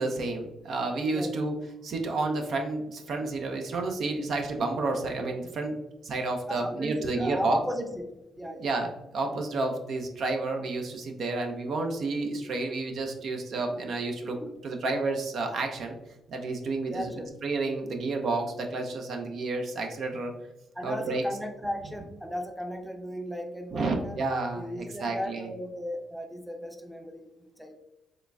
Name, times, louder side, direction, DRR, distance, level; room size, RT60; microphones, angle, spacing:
voice 1, 0.0-1.5 1.8-5.8 6.0-7.6 8.6-14.4 14.6-16.0 16.3-17.1 17.4-20.3 20.8-21.2 23.7-25.5, right 3 dB, 65° right, 3 dB, 0.5 m, -30 dB
voice 2, 0.8-1.3 6.5-8.7 14.4-14.5 16.9-17.3 20.7-24.2 24.5-27.7, equal, 5° right, 4 dB, 0.6 m, -36 dB
3.7 x 3.2 x 2.3 m, 0.95 s
supercardioid pair, 55°, 0 cm